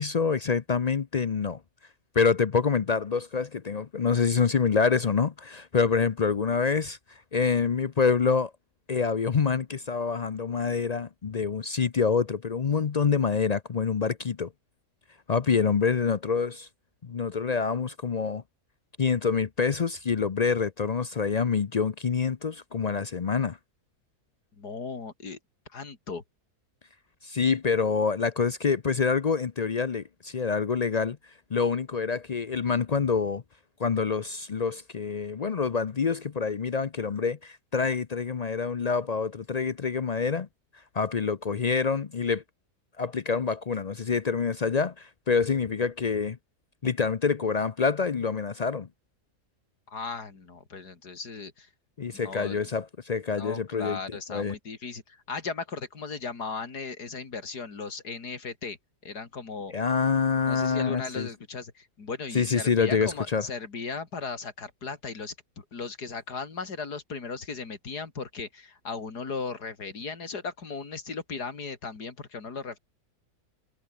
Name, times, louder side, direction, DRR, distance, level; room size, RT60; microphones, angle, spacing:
voice 1, 0.0-1.6 2.1-8.5 8.9-14.5 15.3-16.7 17.0-18.4 19.0-23.6 27.2-31.2 31.5-33.4 33.8-40.5 40.9-42.4 43.0-46.4 46.8-48.9 52.0-54.5 59.7-61.3 62.3-63.4, left 5 dB, 60° left, 0.4 m, -26 dB
voice 2, 24.6-25.4 25.7-26.2 49.9-51.7 52.1-52.6 53.4-58.8 59.0-59.7 60.5-72.8, left 4 dB, 85° left, 3.4 m, -37 dB
omnidirectional pair, 1.7 m